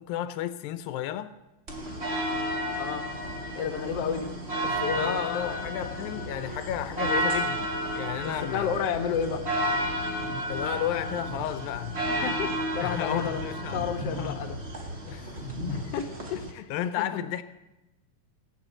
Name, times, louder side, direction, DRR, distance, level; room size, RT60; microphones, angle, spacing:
voice 1, 0.0-1.3 5.0-8.8 10.5-12.0 12.8-13.9 14.1-14.4 15.1-15.3 16.4-17.4, left 11 dB, 85° left, 2.4 m, -33 dB
sound 1, 1.7-16.5, equal, 30° right, 1.3 m, -32 dB
voice 2, 2.8-3.1 3.6-4.3 4.6-5.6 7.0-7.1 8.2-9.5 12.2-13.4 13.7-14.6 15.7-16.7, left 7 dB, 60° left, 1.8 m, -31 dB
17.0 x 8.5 x 7.8 m
omnidirectional pair, 4.1 m